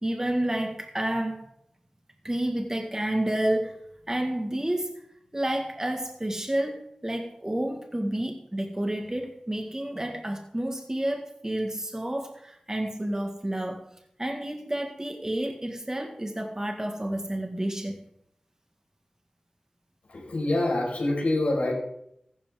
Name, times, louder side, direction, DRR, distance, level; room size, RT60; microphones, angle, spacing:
voice 1, 0.0-1.4 2.2-3.8 4.1-5.1 5.3-13.8 14.2-18.0, right 1 dB, 25° right, 3 dB, 1.8 m, -30 dB
voice 2, 20.3-21.7, left 2 dB, 90° left, -4 dB, 5.1 m, -25 dB
15.0 x 12.0 x 3.7 m, 0.75 s
cardioid pair, 40°, 2 cm